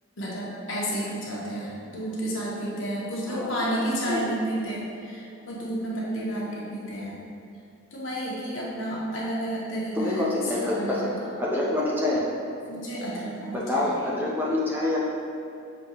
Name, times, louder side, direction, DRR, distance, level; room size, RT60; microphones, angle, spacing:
voice 1, 0.2-7.2 7.9-11.2 12.6-14.0, right 1 dB, 70° left, -6 dB, 1.1 m, -31 dB
voice 2, 3.3-3.8 4.1-4.2 9.9-11.1 11.4-12.2 13.5-15.0, left 2 dB, 10° right, -5 dB, 0.5 m, -26 dB
6.4 x 2.8 x 2.9 m, 2.6 s
head